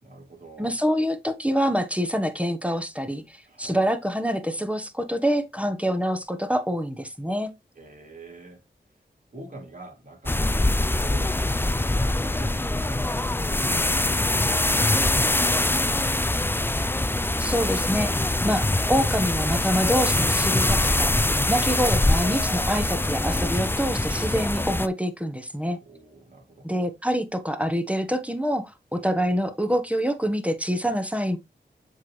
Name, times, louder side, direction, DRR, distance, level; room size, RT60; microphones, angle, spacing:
voice 1, 0.0-0.8 3.4-3.8 7.7-8.6 8.9-9.0 9.3-16.6 21.6-21.7 25.8-26.7 28.9-29.2, right 1 dB, 45° right, 3.0 m, -45 dB
voice 2, 0.6-7.5 17.4-18.1 18.4-25.8 26.6-31.4, equal, 5° right, 1.1 m, -26 dB
sound 1, 10.3-24.9, left 2 dB, 10° left, 0.4 m, -23 dB
7.2 x 4.0 x 3.2 m
cardioid pair, 45°, 19 cm